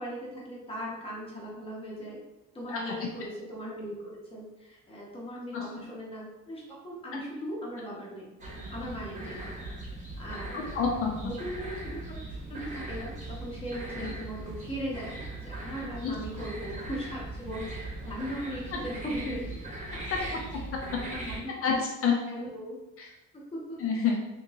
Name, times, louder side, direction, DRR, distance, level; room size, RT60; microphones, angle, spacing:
voice 1, 0.0-2.2 2.5-8.3 8.7-9.5 10.2-10.7 11.2-19.6 20.2-20.4 21.0-21.5 22.3-22.8 23.3-23.8, equal, 20° left, -4 dB, 0.7 m, -38 dB
sound 1, 8.4-21.4, right 2 dB, 25° right, 0.9 m, -39 dB
voice 2, 10.5-11.1 14.0-14.1 16.0-16.1 18.7-18.8 20.1-20.4 20.7-21.0 21.6-22.2 23.0-23.1 23.8-24.2, left 5 dB, 45° left, 0 dB, 0.4 m, -29 dB
3.4 x 2.9 x 2.7 m, 1.0 s
cardioid pair, 170°, 31 cm